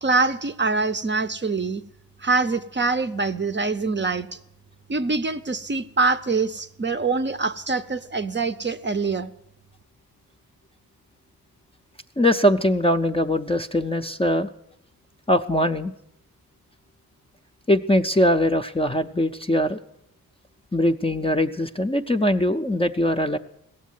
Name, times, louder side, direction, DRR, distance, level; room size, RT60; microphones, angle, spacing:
voice 1, 0.0-1.8 2.2-4.3 4.9-9.3, right 4 dB, 30° right, 10 dB, 0.6 m, -24 dB
voice 2, 12.2-14.5 15.3-15.9 17.7-19.8 20.7-23.4, left 1 dB, 15° left, 6 dB, 0.6 m, -21 dB
17.0 x 7.3 x 9.2 m, 0.77 s
wide cardioid pair, 95°, 37 cm